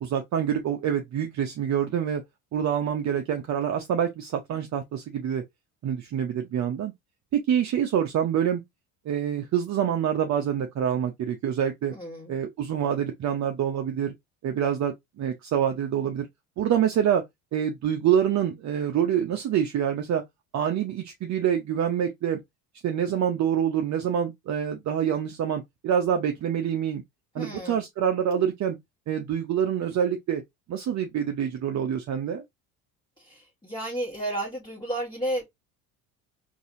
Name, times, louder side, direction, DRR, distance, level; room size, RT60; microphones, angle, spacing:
voice 1, 0.0-2.2 2.5-5.4 5.8-6.9 7.3-8.6 9.1-11.9 12.3-14.1 14.4-16.3 16.6-17.2 17.5-20.2 20.5-22.4 22.8-27.0 27.3-28.8 29.1-30.4 30.7-32.4, right 9 dB, 45° right, 0.7 m, -26 dB
voice 2, 11.9-12.4 27.4-27.8 33.2-35.4, right 1 dB, 10° left, 1.6 m, -32 dB
4.0 x 2.7 x 2.5 m
supercardioid pair, 85°, 39 cm